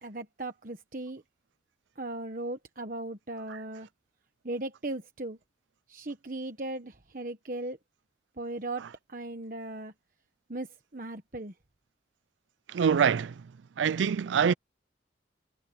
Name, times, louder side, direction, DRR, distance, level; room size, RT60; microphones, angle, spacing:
voice 1, 0.0-1.2 2.0-3.9 4.4-5.4 5.9-7.8 8.4-8.8 9.1-9.9 10.5-11.5, right 2 dB, 45° right, 1.2 m, -37 dB
voice 2, 12.7-13.3 13.8-14.5, right 7 dB, 85° right, 0.4 m, -24 dB
head